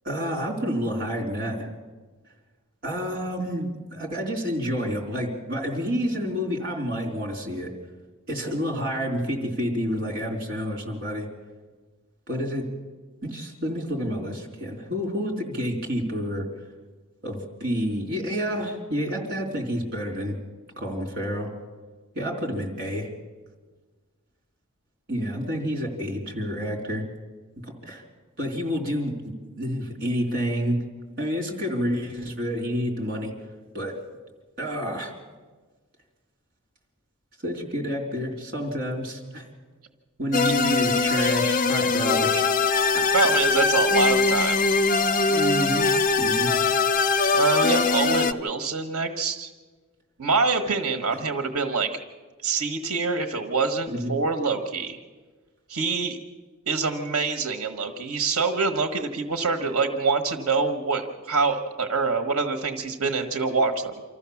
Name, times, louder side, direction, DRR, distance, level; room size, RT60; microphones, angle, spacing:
voice 1, 0.0-1.7 2.8-7.7 8.3-11.3 12.3-12.7 13.2-16.5 17.2-20.4 20.8-21.5 22.2-23.1 25.1-27.0 27.6-28.0 28.4-30.8 31.2-33.3 33.7-34.0 34.6-35.1 37.4-39.5 40.2-42.5 42.9-43.1 45.3-45.9 46.2-46.5 53.9-54.1, equal, 45° right, 1 dB, 3.8 m, -29 dB
sound 1, 40.3-48.3, left 4 dB, 40° left, 0.6 m, -22 dB
voice 2, 43.1-44.6 47.3-49.5 50.2-52.0 52.4-55.0 55.7-56.2 56.7-64.0, right 4 dB, 80° right, 6 dB, 1.4 m, -25 dB
26.0 x 14.0 x 7.2 m, 1.4 s
head